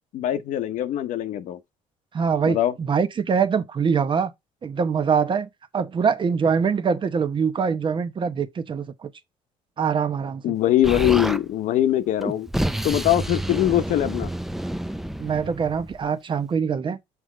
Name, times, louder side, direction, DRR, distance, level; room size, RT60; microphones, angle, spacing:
voice 1, 0.1-1.6 2.5-2.7 10.4-12.5 12.8-14.3, left 12 dB, 70° left, 0.8 m, -22 dB
voice 2, 2.1-4.3 4.6-9.1 9.8-10.6 15.2-17.0, right 6 dB, 40° right, 0.9 m, -24 dB
Explosion, 10.8-11.4 12.2-16.1, right 1 dB, ahead, 0.5 m, -29 dB
6.0 x 5.1 x 3.3 m
cardioid pair, 95°, 13 cm